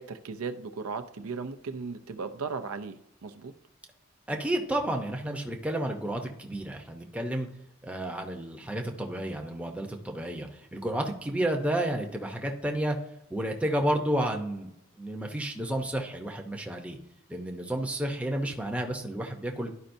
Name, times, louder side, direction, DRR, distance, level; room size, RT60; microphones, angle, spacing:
voice 1, 0.0-3.5, right 5 dB, 75° right, 8 dB, 0.5 m, -37 dB
voice 2, 4.3-7.5 7.8-13.0 13.3-14.7 15.0-17.0 17.3-19.7, right 1 dB, 5° right, 2 dB, 0.7 m, -31 dB
11.5 x 5.1 x 2.6 m, 0.81 s
head